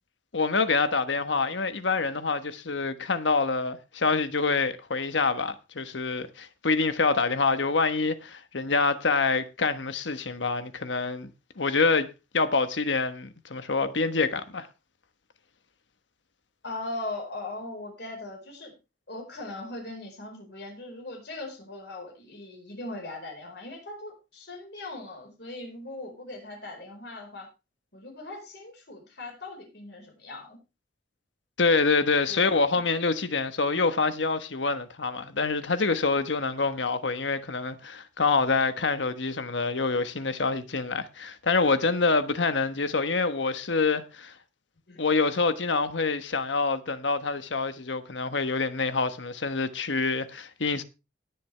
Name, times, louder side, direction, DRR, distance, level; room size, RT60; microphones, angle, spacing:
voice 1, 0.3-11.3 11.6-12.1 12.3-14.7 31.6-44.3 45.0-50.8, left 4 dB, 85° left, 1.2 m, -26 dB
voice 2, 16.6-18.7 19.1-27.5 27.9-30.6 44.9-45.0, left 2 dB, 65° left, 4.6 m, -39 dB
18.5 x 6.9 x 3.3 m
head